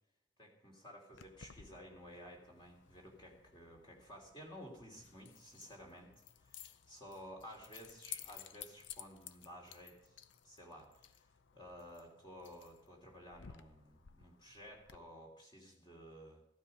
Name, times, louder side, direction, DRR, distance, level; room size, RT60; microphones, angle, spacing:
voice 1, 0.4-6.1 6.4-10.2 10.4-11.2 11.5-16.4, equal, 25° left, 0 dB, 2.8 m, -54 dB
Keys jangling, 1.1-15.0, left 9 dB, 75° left, 0.6 m, -56 dB
15.0 x 12.5 x 5.4 m, 0.79 s
head